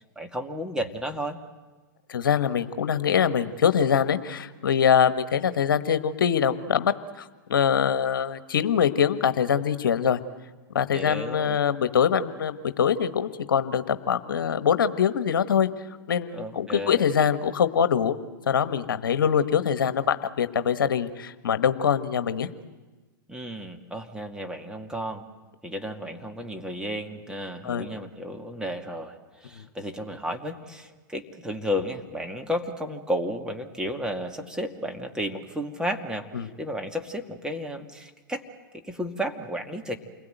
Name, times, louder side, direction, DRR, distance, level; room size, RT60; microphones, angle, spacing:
voice 1, 0.0-1.4 10.9-11.6 16.3-17.1 23.3-25.2 25.6-38.4 38.7-40.0, equal, 5° right, 4 dB, 2.3 m, -33 dB
voice 2, 2.1-6.9 7.5-10.2 10.7-15.7 16.1-18.2 18.5-22.5 27.6-27.9 29.6-29.7 36.3-36.5, left 8 dB, 80° left, 12 dB, 1.3 m, -23 dB
28.5 x 21.0 x 9.2 m, 1.2 s
hypercardioid pair, 110°, 11 cm